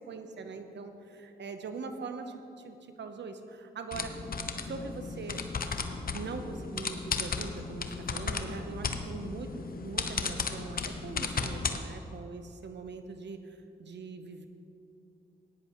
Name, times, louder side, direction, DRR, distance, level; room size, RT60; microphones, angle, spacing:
voice 1, 0.0-4.2 4.6-5.4 6.1-14.5, right 4 dB, 75° right, 7 dB, 0.9 m, -42 dB
sound 1, 3.9-11.8, left 5 dB, 55° left, 0.9 m, -35 dB
15.5 x 10.0 x 3.1 m, 2.7 s
cardioid pair, 50°, 18 cm